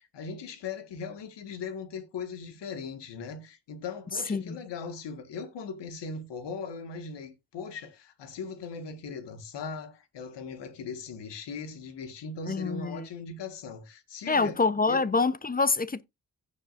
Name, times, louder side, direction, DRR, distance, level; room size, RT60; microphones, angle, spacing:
voice 1, 0.0-14.6 14.9-15.0, left 5 dB, 65° left, 1.9 m, -39 dB
voice 2, 12.4-13.1 14.3-16.0, left 4 dB, 20° left, 0.8 m, -26 dB
16.0 x 5.5 x 2.6 m
hypercardioid pair, 40°, 44 cm